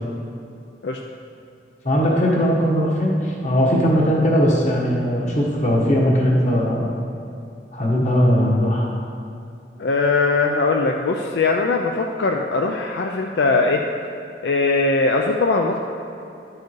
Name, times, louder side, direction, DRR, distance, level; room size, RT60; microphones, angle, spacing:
voice 1, 1.8-6.9 7.7-8.9, equal, 40° left, -3 dB, 1.4 m, -19 dB
voice 2, 9.8-13.8 14.4-15.8, left 3 dB, 70° left, 2 dB, 0.4 m, -20 dB
10.5 x 4.8 x 4.7 m, 2.6 s
head